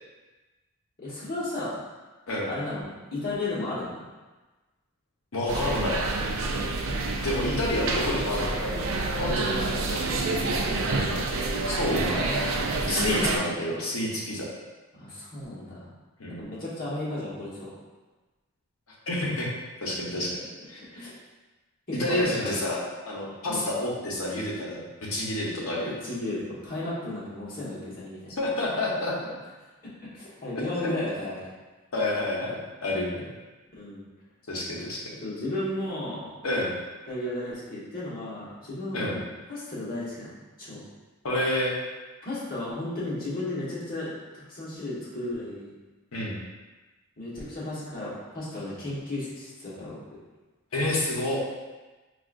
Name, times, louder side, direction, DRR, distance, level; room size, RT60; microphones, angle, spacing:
voice 1, 1.0-1.8 2.5-4.0 9.2-9.7 10.2-10.9 12.9-13.5 14.9-15.8 16.3-17.7 20.9-21.1 21.9-22.5 23.4-23.8 26.0-28.4 30.0-31.4 33.7-34.1 35.2-36.3 37.1-39.2 39.5-40.3 40.6-40.8 42.2-45.7 47.2-50.0, left 1 dB, 45° left, -8 dB, 1.1 m, -34 dB
voice 2, 5.3-6.0 7.2-8.9 9.2-10.3 11.7-12.3 12.9-14.5 16.2-16.4 19.1-19.5 19.8-20.3 20.7-20.8 22.0-25.9 28.4-29.3 30.8-30.9 31.9-33.3 34.5-35.0 36.4-36.7 38.9-39.1 41.2-41.7 46.1-46.4 50.7-51.4, left 1 dB, 75° left, -4 dB, 0.9 m, -29 dB
sound 1, 5.5-13.4, right 3 dB, 65° right, 0.4 m, -28 dB
4.7 x 2.4 x 2.4 m, 1.2 s
head